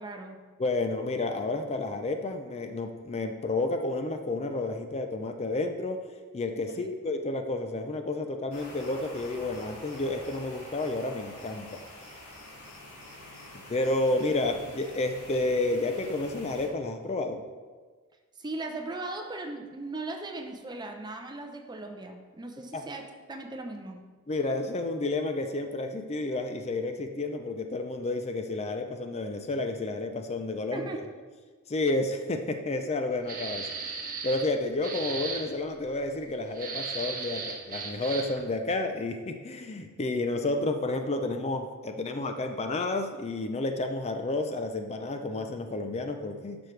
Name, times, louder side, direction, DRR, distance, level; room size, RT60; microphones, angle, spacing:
voice 1, 0.0-0.4 6.7-6.9 18.4-24.1 30.7-31.0, right 2 dB, 20° right, 4 dB, 0.7 m, -38 dB
voice 2, 0.6-6.0 6.3-11.8 13.7-17.4 22.7-22.8 24.3-30.9 31.7-33.6 34.2-46.6, left 2 dB, 30° left, 6 dB, 0.5 m, -30 dB
sound 1, 8.5-16.7, left 1 dB, 90° left, 2.3 m, -47 dB
sound 2, 33.3-34.5 34.8-35.4 36.5-38.4, right 5 dB, 40° right, 1.2 m, -36 dB
11.5 x 6.1 x 3.2 m, 1.4 s
head